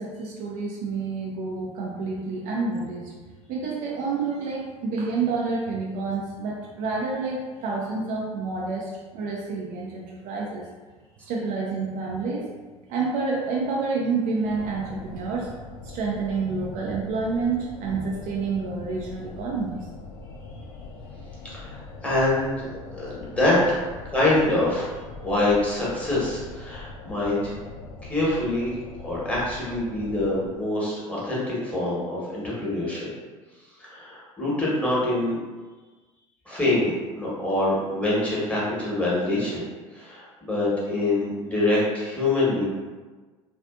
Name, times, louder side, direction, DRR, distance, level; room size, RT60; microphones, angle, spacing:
voice 1, 0.0-3.2 3.5-10.6 11.3-12.4 12.9-15.5 15.8-19.9, right 4 dB, 50° right, -3 dB, 0.5 m, -28 dB
sound 1, 14.4-30.5, left 3 dB, 55° left, 0.6 m, -42 dB
voice 2, 21.5-22.7 22.9-23.6 24.1-24.9 25.2-27.5 28.1-28.7 29.0-33.1 33.9-35.3 36.5-39.7 39.9-42.7, left 2 dB, 5° left, -8 dB, 1.1 m, -25 dB
2.6 x 2.4 x 2.3 m, 1.3 s
figure-of-eight pair, 70°, 18 cm